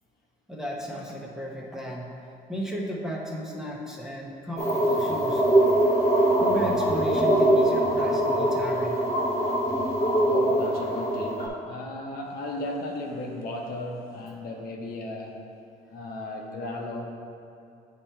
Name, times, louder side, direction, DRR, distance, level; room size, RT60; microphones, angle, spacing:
voice 1, 0.5-2.1 2.5-5.4 6.4-9.0, equal, 5° right, -3 dB, 0.8 m, -34 dB
sound 1, 4.6-11.5, right 1 dB, 15° left, 1.1 m, -23 dB
voice 2, 10.3-15.4 15.9-17.1, left 1 dB, 65° left, 0 dB, 0.9 m, -35 dB
8.6 x 3.0 x 4.5 m, 2.5 s
cardioid pair, 110°, 17 cm